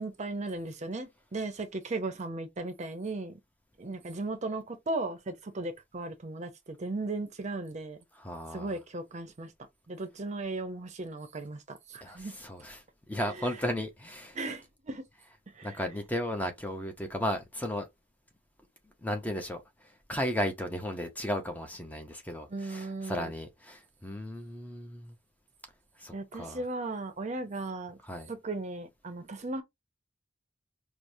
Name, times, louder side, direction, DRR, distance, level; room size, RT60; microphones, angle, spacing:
voice 1, 0.0-3.4 3.8-8.0 8.5-9.5 9.9-12.4 13.4-13.5 14.3-15.1 15.5-15.8 22.5-23.3 26.1-28.0 28.3-29.6, right 2 dB, 35° right, 0.6 m, -36 dB
voice 2, 8.1-8.7 12.0-12.8 13.1-14.4 15.6-17.9 19.0-25.2 26.0-26.6 28.1-28.3, equal, 10° left, 0.5 m, -35 dB
4.7 x 2.1 x 2.6 m
head